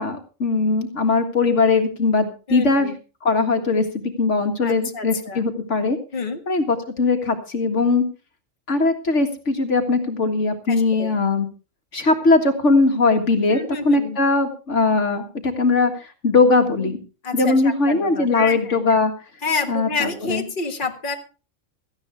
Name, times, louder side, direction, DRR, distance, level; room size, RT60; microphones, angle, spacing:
voice 1, 0.0-2.9 3.2-3.8 4.2-6.0 6.5-8.0 8.7-11.5 11.9-17.0 17.3-19.1 19.7-20.5, left 3 dB, 70° left, 5 dB, 2.1 m, -20 dB
voice 2, 2.5-2.9 4.6-5.4 6.1-6.4 10.7-11.1 13.5-14.2 17.2-19.0 19.4-21.1, left 4 dB, 40° left, 3 dB, 1.8 m, -28 dB
17.5 x 14.0 x 3.5 m, 0.34 s
omnidirectional pair, 1.3 m